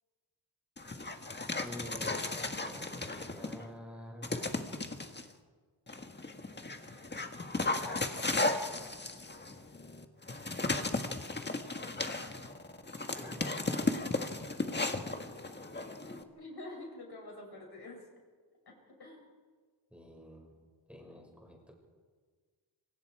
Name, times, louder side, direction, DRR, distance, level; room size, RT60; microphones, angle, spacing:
Dog, 0.8-3.7 4.2-5.2 5.9-16.2, left 2 dB, 25° left, 1.7 m, -35 dB
voice 1, 1.6-4.5 7.8-8.0 8.8-9.1 13.1-13.8 19.9-20.5 20.9-21.7, equal, 5° right, 0 dB, 6.2 m, -49 dB
voice 2, 10.5-10.9 15.7-18.1 18.7-19.2, left 2 dB, 60° left, 0 dB, 7.3 m, -48 dB
27.5 x 25.5 x 4.9 m, 1.5 s
wide cardioid pair, 115°, 45 cm